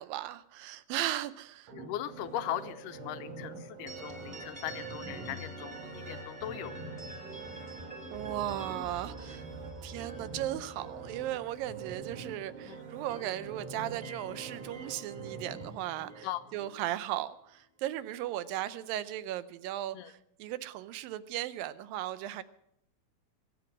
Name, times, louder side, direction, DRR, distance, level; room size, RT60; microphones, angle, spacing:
voice 1, 0.0-1.7 8.1-9.5 9.8-22.4, right 13 dB, 80° right, 14 dB, 2.4 m, -36 dB
voice 2, 1.7-6.7 12.7-12.8 16.2-16.5 19.9-20.1, left 12 dB, 75° left, 11 dB, 2.1 m, -39 dB
sound 1, 1.7-16.7 17.2-17.3, right 5 dB, 60° right, 4.1 m, -45 dB
sound 2, 3.9-12.6 12.9-17.0, equal, 15° right, 2.7 m, -48 dB
22.5 x 8.6 x 6.2 m, 0.74 s
omnidirectional pair, 4.1 m